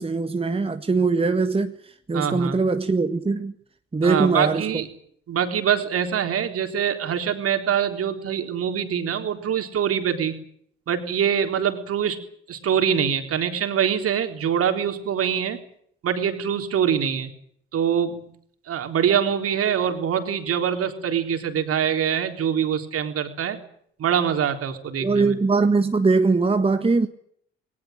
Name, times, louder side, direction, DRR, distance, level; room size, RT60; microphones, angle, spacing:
voice 1, 0.0-1.7 2.1-3.5 3.9-4.8 25.0-27.1, right 4 dB, 20° right, 1.7 m, -21 dB
voice 2, 2.1-2.6 4.0-4.9 5.3-10.3 10.9-12.2 12.5-15.6 16.0-17.3 17.7-18.2 18.7-23.6 24.0-25.3, right 8 dB, 50° right, 3.8 m, -24 dB
21.0 x 19.0 x 9.1 m
figure-of-eight pair, 45°, 29 cm